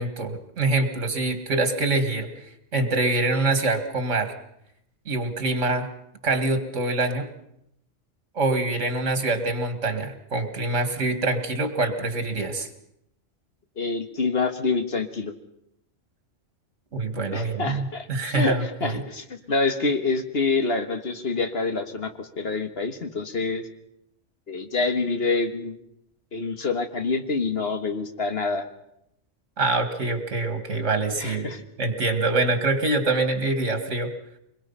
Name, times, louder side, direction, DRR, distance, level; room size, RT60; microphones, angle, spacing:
voice 1, 0.0-4.3 5.1-5.9 6.2-7.3 8.3-12.7 16.9-19.0 29.6-31.5 31.8-34.1, right 2 dB, 75° right, 8 dB, 2.3 m, -25 dB
voice 2, 13.8-15.3 17.3-23.6 24.5-25.7 26.3-28.7 31.2-31.6, left 3 dB, 55° left, 7 dB, 1.6 m, -26 dB
24.5 x 22.0 x 5.6 m, 0.78 s
omnidirectional pair, 1.3 m